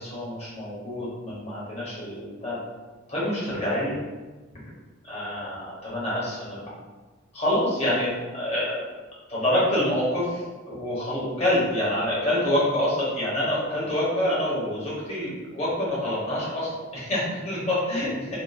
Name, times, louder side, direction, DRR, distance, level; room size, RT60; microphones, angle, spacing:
voice 1, 0.0-2.6 3.1-4.0 4.5-4.6 5.0-6.6 7.3-8.8 9.3-18.1, left 1 dB, 30° left, -8 dB, 1.0 m, -27 dB
3.6 x 2.0 x 2.6 m, 1.3 s
head